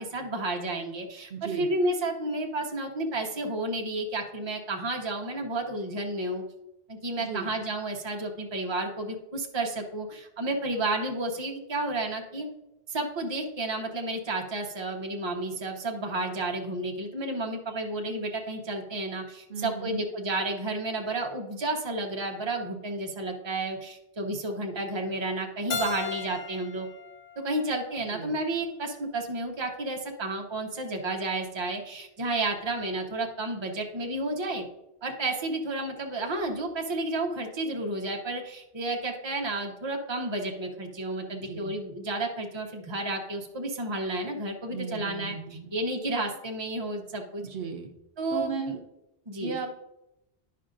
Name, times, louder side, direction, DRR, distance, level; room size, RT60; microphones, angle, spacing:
voice 1, 0.0-6.4 6.9-12.5 12.9-26.9 27.4-34.7 35.0-45.4 45.7-47.4 48.2-48.8 49.3-49.6, right 2 dB, 25° right, 1 dB, 0.8 m, -31 dB
voice 2, 1.3-1.7 7.2-7.5 19.5-20.0 28.1-28.4 41.3-41.7 44.7-45.7 47.4-47.9 48.3-48.8 49.4-49.7, right 6 dB, 65° right, 4 dB, 0.9 m, -35 dB
Keyboard (musical), 25.7-28.5, left 5 dB, 50° left, 0.6 m, -37 dB
10.0 x 5.6 x 2.5 m, 0.90 s
omnidirectional pair, 1.1 m